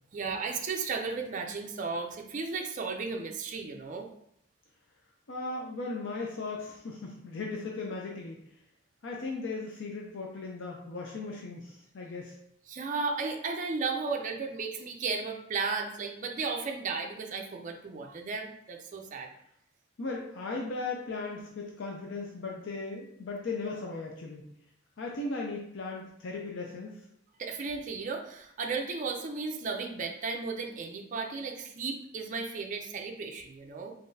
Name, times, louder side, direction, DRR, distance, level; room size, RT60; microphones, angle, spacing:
voice 1, 0.1-4.1 12.7-19.3 27.4-33.9, right 4 dB, 40° right, 3 dB, 0.4 m, -34 dB
voice 2, 5.3-8.4 9.0-12.4 20.0-24.5 25.0-27.0, left 3 dB, 60° left, -1 dB, 0.5 m, -37 dB
3.8 x 3.3 x 2.7 m, 0.74 s
head